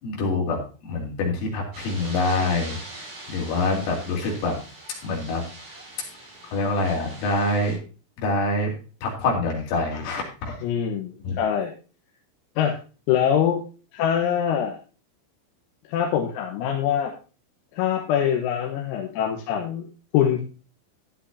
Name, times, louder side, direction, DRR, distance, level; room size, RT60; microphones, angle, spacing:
voice 1, 0.0-0.6 0.9-2.8 3.3-4.6 5.0-5.4 6.5-7.8 8.2-8.7 9.0-10.6 11.2-11.3, left 2 dB, 75° left, -1 dB, 6.0 m, -25 dB
sound 1, 1.7-7.7, right 2 dB, 40° right, 7.4 m, -42 dB
voice 2, 10.6-11.7 12.6-12.8 13.1-13.6 13.9-14.8 15.9-17.1 17.7-19.9 20.1-20.4, left 9 dB, 90° left, 2 dB, 4.0 m, -23 dB
14.5 x 10.5 x 2.8 m, 0.35 s
omnidirectional pair, 5.9 m